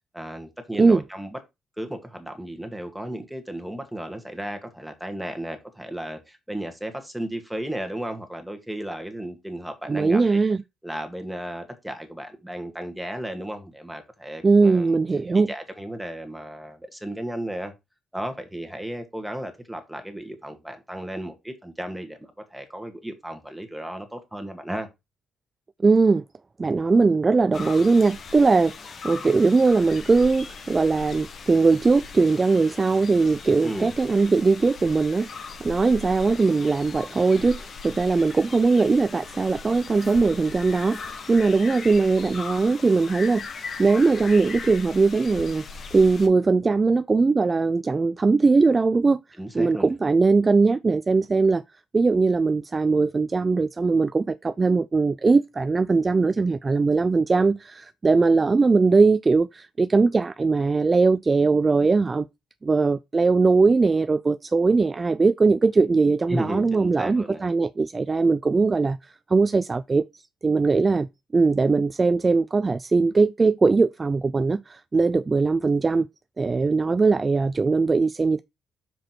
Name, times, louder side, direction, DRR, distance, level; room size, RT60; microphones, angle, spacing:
voice 1, 0.1-1.4 1.8-10.4 10.8-15.0 15.3-17.7 18.1-24.9 33.6-33.9 49.4-49.9 66.3-67.4, right 1 dB, 5° right, 2.0 m, -34 dB
voice 2, 9.9-10.6 14.4-15.5 25.8-26.2 26.6-28.7 29.0-35.3 35.6-43.5 43.8-45.7 45.9-49.2 49.5-51.6 51.9-62.3 62.6-70.0 70.4-76.1 76.4-78.4, right 4 dB, 30° right, 0.3 m, -20 dB
sound 1, 27.5-46.3, left 5 dB, 50° left, 1.4 m, -39 dB
6.2 x 5.0 x 4.6 m
cardioid pair, 90°, 0 cm